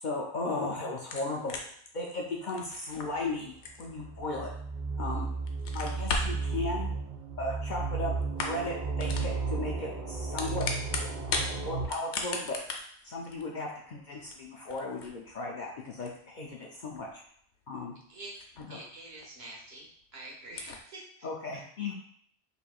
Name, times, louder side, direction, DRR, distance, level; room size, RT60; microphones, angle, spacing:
voice 1, 0.0-1.6 1.9-3.5 3.8-4.5 5.0-5.3 5.7-6.9 7.4-8.1 8.4-10.7 11.5-12.6 13.0-17.1 17.7-17.9 18.6-18.8 21.2-21.9, left 2 dB, 55° left, -2 dB, 0.6 m, -35 dB
sound 1, 1.1-5.0 5.4-6.4 7.5-8.0 8.2-8.7 9.0-9.3 10.1-11.5 11.8-18.9 19.2-19.3 19.7-19.8 20.0-20.1 20.5-20.8, left 4 dB, 80° left, 0.9 m, -38 dB
sound 2, 3.1-11.8, right 4 dB, 25° right, 0.4 m, -34 dB
voice 2, 18.7-21.3 21.5-21.6, right 2 dB, 60° right, -2 dB, 1.2 m, -47 dB
4.3 x 3.2 x 2.3 m, 0.62 s
omnidirectional pair, 1.2 m